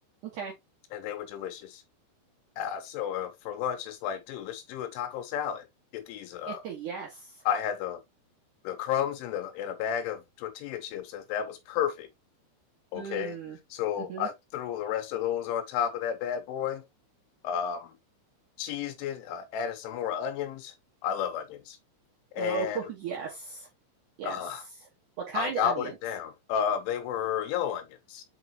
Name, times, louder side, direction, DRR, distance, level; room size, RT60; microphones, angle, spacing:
voice 1, 0.9-1.8 2.6-5.7 5.9-6.6 7.5-8.0 8.6-12.1 12.9-13.4 13.7-16.8 17.4-17.9 18.6-20.7 21.0-21.8 22.3-22.9 24.2-24.6 25.3-28.2, left 9 dB, 80° left, 3.1 m, -32 dB
voice 2, 6.4-7.4 12.9-13.6 14.0-14.3 22.4-23.7 24.2-24.3 25.3-25.9, right 6 dB, 70° right, 1.9 m, -35 dB
6.9 x 4.9 x 2.8 m
omnidirectional pair, 5.8 m